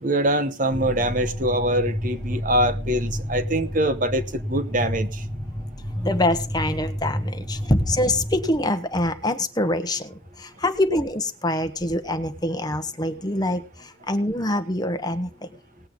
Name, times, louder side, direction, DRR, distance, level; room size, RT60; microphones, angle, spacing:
voice 1, 0.0-5.2, right 1 dB, 45° right, 1.0 m, -24 dB
sound 1, 0.7-8.5, equal, 10° right, 2.2 m, -30 dB
voice 2, 6.0-10.0 10.6-13.6 14.1-15.3, left 1 dB, 20° left, 1.1 m, -24 dB
19.5 x 7.8 x 3.8 m
head